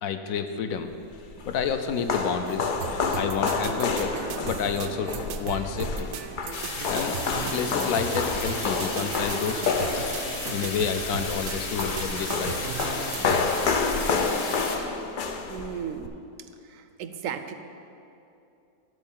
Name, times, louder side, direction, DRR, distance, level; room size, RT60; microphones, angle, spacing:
voice 1, 0.0-0.9 1.4-2.7 3.1-6.1 6.9-7.2 7.5-10.0 10.5-12.6, left 6 dB, 70° left, 7 dB, 1.0 m, -29 dB
sound 1, 1.0-16.1, left 4 dB, 90° left, 0.4 m, -29 dB
sound 2, 2.8-13.5, right 8 dB, 85° right, 1.1 m, -37 dB
sound 3, 6.5-14.8, left 3 dB, 45° left, 1.3 m, -35 dB
voice 2, 15.5-16.1 16.7-17.5, right 8 dB, 70° right, 8 dB, 0.9 m, -35 dB
12.0 x 4.5 x 7.4 m, 2.7 s
omnidirectional pair, 1.6 m